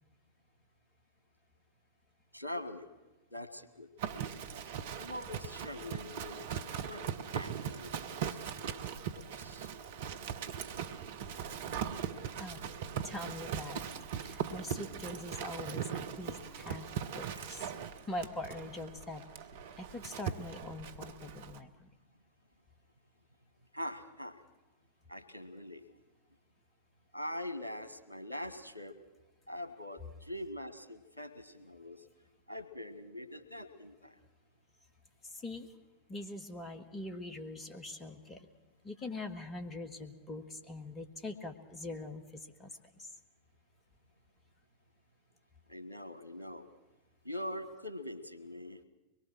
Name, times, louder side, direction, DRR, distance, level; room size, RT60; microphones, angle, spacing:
voice 1, 2.3-2.9 3.3-3.9 5.0-6.4 6.7-8.9 9.1-9.7 17.4-17.5 23.7-24.4 25.1-25.8 27.1-29.0 29.5-32.0 32.5-34.2 45.7-46.7 47.2-48.8, left 1 dB, 80° left, 12 dB, 1.6 m, -43 dB
Livestock farm animals working animals, 4.0-21.6, right 8 dB, 55° right, 1.1 m, -40 dB
voice 2, 13.0-13.9 14.2-16.9 17.1-17.7 18.1-19.2 19.8-21.9 35.2-35.7 36.1-38.5 38.8-43.1, left 2 dB, 20° left, 7 dB, 1.9 m, -43 dB
23.5 x 21.5 x 6.2 m, 1.1 s
figure-of-eight pair, 90°, 0 cm